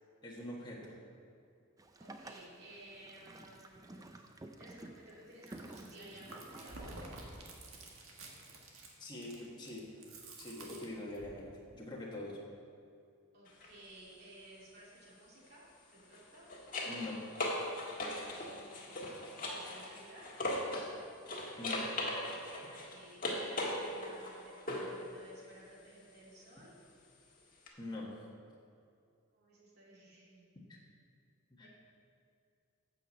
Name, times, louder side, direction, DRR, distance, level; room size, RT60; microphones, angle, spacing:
voice 1, 0.2-1.0 9.0-9.9 10.4-12.4 16.8-17.2 21.6-21.9 27.8-28.2 31.6-31.7, left 2 dB, 20° left, -4 dB, 1.5 m, -44 dB
Boat Water vehicle, 1.8-7.1, right 1 dB, 15° right, 0.4 m, -52 dB
voice 2, 2.0-7.5 13.3-15.6 15.9-16.5 18.0-19.2 19.4-20.4 22.6-26.7 29.3-30.4 31.6-31.7, right 1 dB, 50° right, -6 dB, 2.7 m, -56 dB
Chewing mastication, 5.3-11.4, right 2 dB, 75° right, 1.5 m, -51 dB
sound 1, 13.5-13.7 16.0-20.9 21.3-25.0 27.7-27.8, left 1 dB, 40° left, 1.5 m, -39 dB
9.0 x 6.0 x 7.5 m, 2.5 s
head